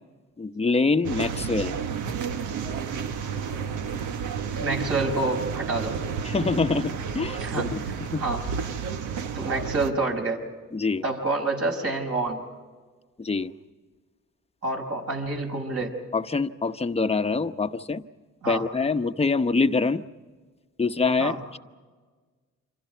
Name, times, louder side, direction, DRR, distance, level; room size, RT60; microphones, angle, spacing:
voice 1, 0.4-1.7 6.2-7.8 8.1-8.2 10.7-11.0 13.2-13.5 16.1-18.0 18.5-20.0 20.8-21.4, left 4 dB, 20° left, 9 dB, 0.9 m, -25 dB
sound 1, 1.0-9.9, right 6 dB, 80° right, 1.3 m, -31 dB
voice 2, 4.6-6.0 7.4-8.4 9.3-10.4 11.0-12.4 14.6-16.0 18.4-18.7 21.2-21.4, right 2 dB, 50° right, 2 dB, 5.4 m, -28 dB
28.5 x 26.5 x 4.6 m, 1.4 s
cardioid pair, 90°, 30 cm